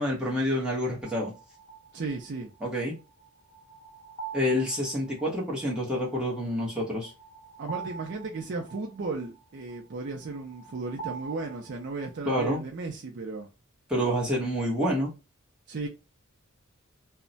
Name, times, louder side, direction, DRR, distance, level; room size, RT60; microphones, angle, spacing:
voice 1, 0.0-1.3 2.6-3.0 4.3-7.1 12.2-12.6 13.9-15.1, equal, 5° right, 1.0 m, -28 dB
sound 1, 1.0-12.3, right 6 dB, 35° left, 0.6 m, -45 dB
voice 2, 1.9-2.5 7.6-13.5 15.7-15.9, right 3 dB, 55° right, 0.5 m, -35 dB
2.3 x 2.1 x 3.8 m
head